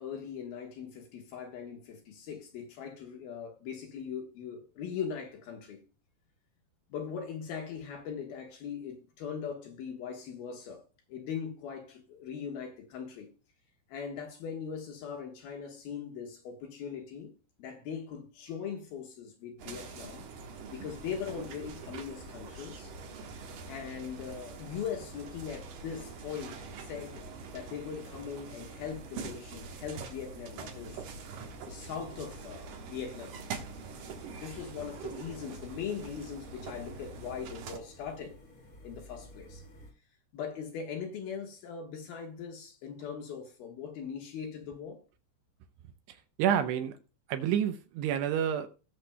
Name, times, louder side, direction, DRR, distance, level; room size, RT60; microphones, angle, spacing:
voice 1, 0.0-5.8 6.9-10.8 11.1-13.3 13.9-17.3 17.6-20.3 20.7-22.9 23.7-27.2 27.5-31.0 31.7-33.4 34.3-38.4 38.8-39.6 40.3-45.0, left 7 dB, 65° left, 2.8 m, -40 dB
sound 1, 19.6-37.8, right 5 dB, 65° right, 2.3 m, -45 dB
sound 2, 20.9-39.9, equal, 35° left, 1.5 m, -53 dB
voice 2, 46.1-47.0 47.3-48.7, right 9 dB, 80° right, 2.6 m, -29 dB
19.5 x 6.8 x 2.2 m
omnidirectional pair, 5.2 m